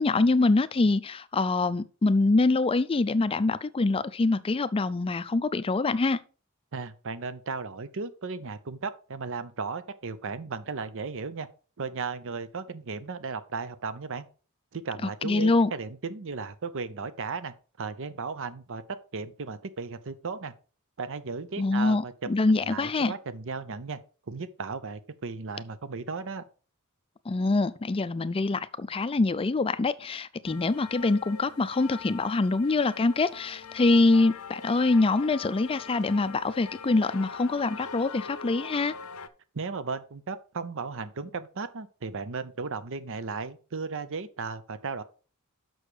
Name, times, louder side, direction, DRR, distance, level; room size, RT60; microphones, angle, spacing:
voice 1, 0.0-6.2 15.2-15.7 21.6-23.1 27.3-38.9, left 3 dB, 25° left, 0.4 m, -25 dB
voice 2, 6.7-11.5 11.8-14.3 14.7-20.5 21.0-22.1 22.6-24.0 24.3-26.4 39.5-45.0, right 4 dB, 65° right, 0.7 m, -35 dB
sound 1, 30.5-39.3, left 5 dB, 75° left, 0.7 m, -42 dB
6.5 x 6.2 x 5.0 m
head